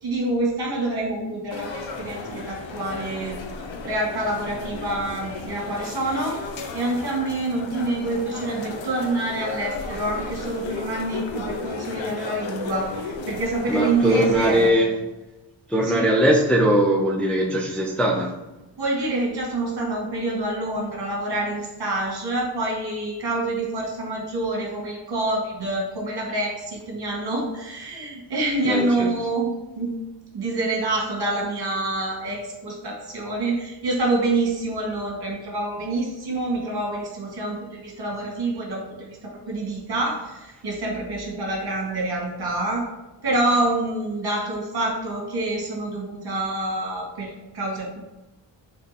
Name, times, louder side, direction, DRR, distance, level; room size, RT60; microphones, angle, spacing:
voice 1, 0.0-3.4 3.8-6.4 6.7-14.7 15.8-16.0 18.8-29.9 30.3-42.8 43.2-48.0, right 2 dB, 55° right, 2.2 m, -27 dB
sound 1, 1.5-14.7, left 4 dB, 85° left, 1.0 m, -34 dB
voice 2, 13.7-15.0 15.7-18.3 28.6-29.1, equal, 5° left, 0.5 m, -20 dB
7.8 x 3.9 x 4.2 m
wide cardioid pair, 175°, 44 cm